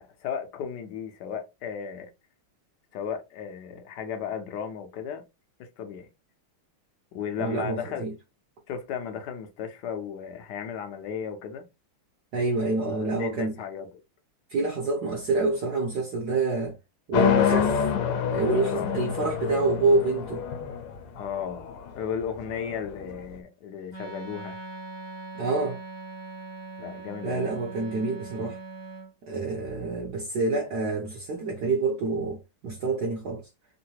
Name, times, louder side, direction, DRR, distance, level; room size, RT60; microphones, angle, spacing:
voice 1, 0.0-2.1 2.9-5.2 5.6-6.1 7.1-8.0 8.7-11.6 12.8-13.9 18.7-19.0 21.1-21.7 21.9-24.6 26.8-27.5, left 7 dB, 65° left, 1.2 m, -35 dB
voice 2, 7.4-8.1 12.3-13.5 14.5-16.8 17.1-17.9 18.3-20.4 25.3-25.8 27.2-28.6 29.2-33.4, right 3 dB, 60° right, 1.2 m, -27 dB
sound 1, 17.1-23.2, left 8 dB, 85° left, 1.5 m, -27 dB
Wind instrument woodwind instrument, 23.9-29.1, right 3 dB, 30° left, 0.5 m, -41 dB
3.7 x 2.6 x 2.8 m
omnidirectional pair, 2.4 m